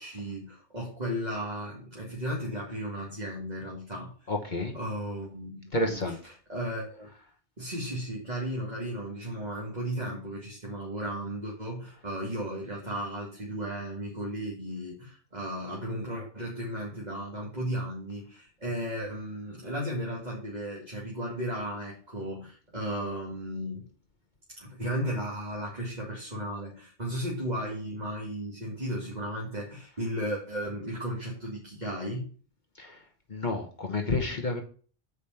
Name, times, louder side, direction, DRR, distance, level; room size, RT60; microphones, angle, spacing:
voice 1, 0.0-4.3 4.7-7.1 7.6-23.9 24.6-32.3, equal, 40° right, -4 dB, 2.4 m, -35 dB
voice 2, 4.3-4.7 5.7-6.1 33.3-34.6, left 2 dB, 45° left, 2 dB, 1.3 m, -29 dB
8.2 x 5.2 x 5.8 m, 0.42 s
omnidirectional pair, 1.1 m